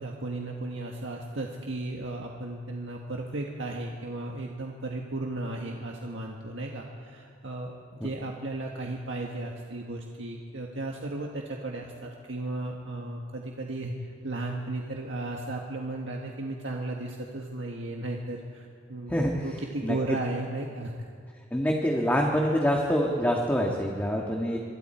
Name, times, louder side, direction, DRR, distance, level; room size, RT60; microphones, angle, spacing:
voice 1, 0.0-20.9, right 2 dB, 80° right, 0 dB, 1.7 m, -35 dB
voice 2, 19.1-19.4 19.8-19.9 21.5-24.6, equal, 10° left, 0 dB, 1.6 m, -25 dB
25.5 x 24.0 x 4.5 m, 2.3 s
head